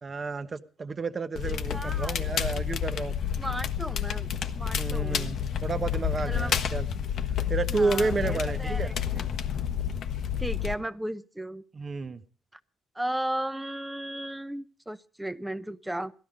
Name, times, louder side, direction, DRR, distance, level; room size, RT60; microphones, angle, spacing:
voice 1, 0.0-3.1 4.8-6.9 7.5-8.9 11.7-12.2, right 3 dB, 35° right, 9 dB, 1.1 m, -31 dB
Crackle, 1.4-10.7, left 8 dB, 65° left, 1.2 m, -30 dB
voice 2, 1.4-2.2 3.4-4.3 4.6-5.3 6.3-6.7 7.7-9.2 10.4-11.6 12.9-16.1, right 1 dB, 5° right, 13 dB, 0.7 m, -35 dB
17.5 x 13.0 x 5.1 m, 0.39 s
cardioid pair, 90°, 0 cm